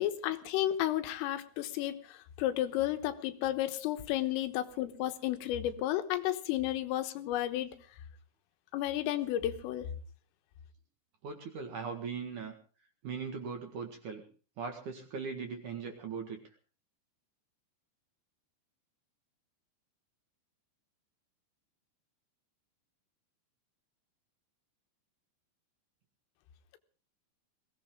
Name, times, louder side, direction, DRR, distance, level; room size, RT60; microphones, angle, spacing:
voice 1, 0.0-7.8 8.7-9.9, left 13 dB, 90° left, 8 dB, 3.9 m, -32 dB
voice 2, 11.2-12.5 13.0-14.2 14.6-16.4, right 5 dB, 55° right, 4 dB, 2.5 m, -39 dB
21.5 x 17.0 x 3.8 m, 0.38 s
omnidirectional pair, 5.7 m